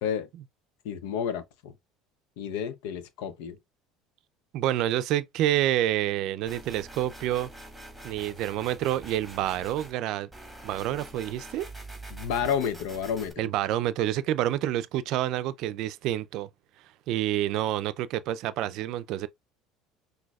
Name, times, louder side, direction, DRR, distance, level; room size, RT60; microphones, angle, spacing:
voice 1, 0.8-1.7 2.4-3.6 12.1-13.5, left 8 dB, 80° left, 0.7 m, -31 dB
voice 2, 4.5-7.5 8.0-10.3 10.6-11.7 13.4-16.5 17.1-19.3, right 13 dB, 65° right, 0.4 m, -28 dB
sound 1, 6.5-9.9 10.3-13.3, right 1 dB, ahead, 2.1 m, -45 dB
6.0 x 2.7 x 2.3 m
supercardioid pair, 105°, 0 cm